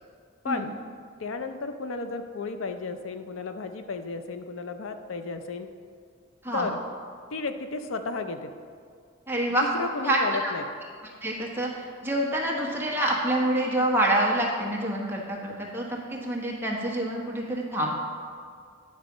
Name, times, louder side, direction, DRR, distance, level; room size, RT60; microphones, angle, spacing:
voice 1, 1.2-5.7 6.5-6.8 7.3-8.5 9.6-10.7, left 3 dB, 85° left, 8 dB, 0.5 m, -33 dB
voice 2, 9.3-10.5 11.2-17.9, right 1 dB, 10° right, -3 dB, 1.2 m, -27 dB
9.5 x 4.1 x 6.0 m, 2.1 s
head